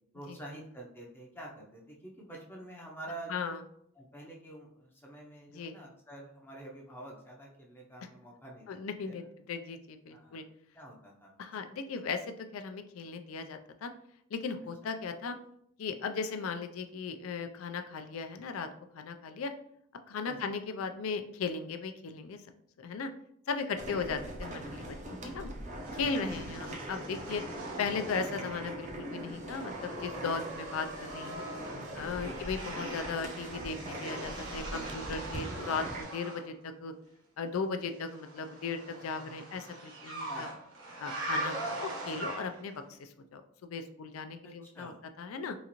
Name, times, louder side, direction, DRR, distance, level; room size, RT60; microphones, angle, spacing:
voice 1, 0.1-3.3 3.9-9.3 10.1-10.5 10.7-11.3 20.2-20.5 23.9-24.2 32.2-32.4 40.3-40.6 44.4-45.0, right 1 dB, 10° left, -2 dB, 0.5 m, -48 dB
voice 2, 3.3-3.6 5.5-5.8 8.7-10.4 11.4-12.2 12.5-13.9 14.3-15.3 15.8-18.7 18.9-19.5 20.1-22.4 22.8-23.1 23.5-25.5 25.9-27.4 27.8-31.5 31.9-36.9 37.4-40.5 41.0-44.9 45.2-45.6, left 5 dB, 85° left, 8 dB, 0.4 m, -37 dB
sound 1, 23.8-36.0, right 1 dB, 35° right, 0.5 m, -41 dB
sound 2, 25.8-28.9 29.2-36.5 38.0-42.7, right 2 dB, 75° right, 1.2 m, -42 dB
3.9 x 2.4 x 2.9 m, 0.71 s
head